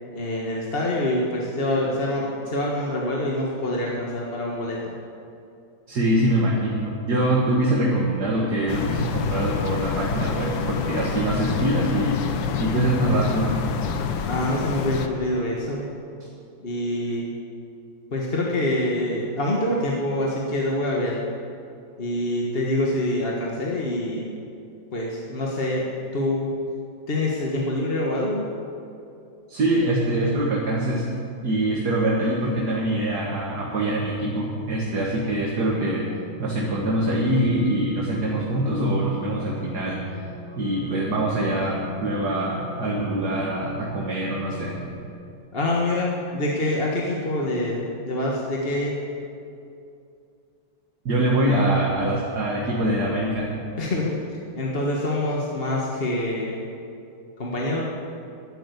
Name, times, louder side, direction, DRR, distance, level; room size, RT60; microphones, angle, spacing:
voice 1, 0.1-4.9 14.2-15.9 16.6-17.3 18.1-21.2 22.0-24.3 24.9-26.5 27.1-28.4 45.5-49.0 53.8-54.2 54.5-56.6 57.4-57.8, left 1 dB, 30° left, -3 dB, 1.6 m, -25 dB
voice 2, 5.9-13.6 29.5-31.1 31.4-36.0 36.4-40.2 40.6-44.7 51.1-53.5, right 1 dB, 55° right, -4 dB, 2.2 m, -24 dB
sound 1, 8.7-15.1, left 7 dB, 80° left, 1.7 m, -27 dB
sound 2, 35.7-45.3, equal, 10° left, 0.7 m, -41 dB
12.0 x 11.0 x 8.2 m, 2.6 s
omnidirectional pair, 2.1 m